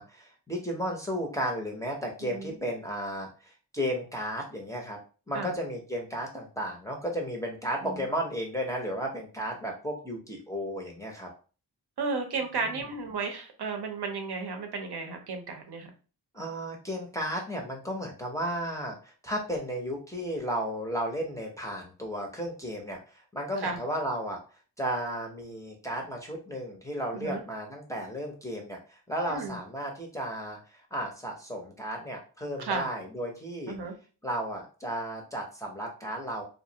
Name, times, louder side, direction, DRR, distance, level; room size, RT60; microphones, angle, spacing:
voice 1, 0.0-5.0 5.3-11.3 12.7-12.8 16.3-24.4 24.8-33.8 34.2-36.4, equal, 5° left, -1 dB, 0.5 m, -34 dB
voice 2, 2.2-2.6 5.3-5.5 7.8-8.0 12.0-15.9 23.6-23.8 27.1-27.4 29.3-29.6 32.6-32.9 33.7-33.9, right 4 dB, 60° right, 4 dB, 0.6 m, -33 dB
2.3 x 2.0 x 2.7 m, 0.36 s
wide cardioid pair, 80°, 43 cm